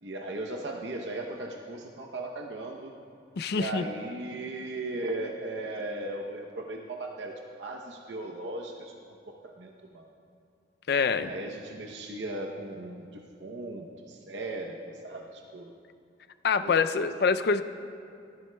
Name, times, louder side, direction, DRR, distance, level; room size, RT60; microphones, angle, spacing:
voice 1, 0.0-2.9 3.5-8.9 9.3-10.1 11.2-15.7 16.6-17.1, right 2 dB, 75° right, 1 dB, 0.8 m, -37 dB
voice 2, 3.4-3.8 10.9-11.3 16.4-17.6, left 5 dB, 60° left, 11 dB, 0.4 m, -25 dB
17.0 x 13.0 x 2.2 m, 2.5 s
head